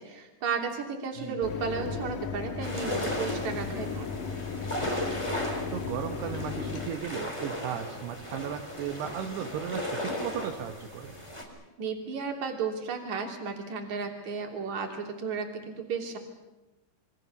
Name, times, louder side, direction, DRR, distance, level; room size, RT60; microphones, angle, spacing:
voice 1, 0.0-4.2 11.8-16.2, right 5 dB, 45° right, 2 dB, 4.1 m, -34 dB
Mechanisms, 1.4-6.9, left 5 dB, 55° left, 3.0 m, -36 dB
sound 1, 2.6-11.4, left 1 dB, 5° left, 3.7 m, -36 dB
voice 2, 5.7-11.1, right 9 dB, 75° right, 5 dB, 3.0 m, -36 dB
27.5 x 24.0 x 7.0 m, 1.1 s
omnidirectional pair, 5.0 m